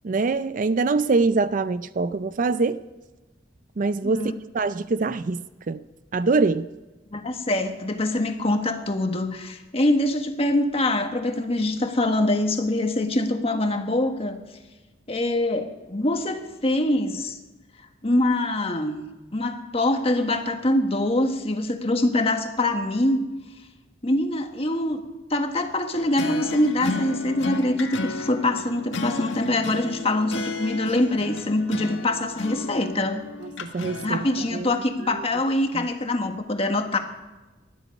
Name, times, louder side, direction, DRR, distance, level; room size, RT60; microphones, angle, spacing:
voice 1, 0.0-2.8 3.8-5.8 6.1-6.7 33.4-34.7 35.7-35.9, right 3 dB, 45° right, 14 dB, 0.4 m, -24 dB
voice 2, 4.0-4.3 7.1-14.4 15.1-17.4 18.0-19.0 19.3-23.3 24.0-25.0 25.3-33.2 34.0-37.0, left 1 dB, 30° left, 5 dB, 1.5 m, -24 dB
sound 1, 25.9-34.5, left 3 dB, 85° left, 1.6 m, -33 dB
20.0 x 13.0 x 5.3 m, 1.2 s
head